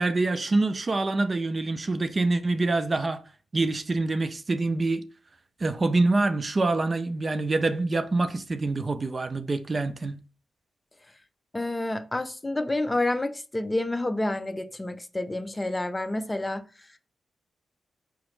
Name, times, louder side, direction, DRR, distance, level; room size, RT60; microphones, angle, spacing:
voice 1, 0.0-3.2 3.5-5.0 5.6-10.2, right 2 dB, 40° right, 0.5 m, -25 dB
voice 2, 11.5-16.6, left 2 dB, 20° left, 0.5 m, -29 dB
4.9 x 3.0 x 3.1 m
cardioid pair, 70°, 0 cm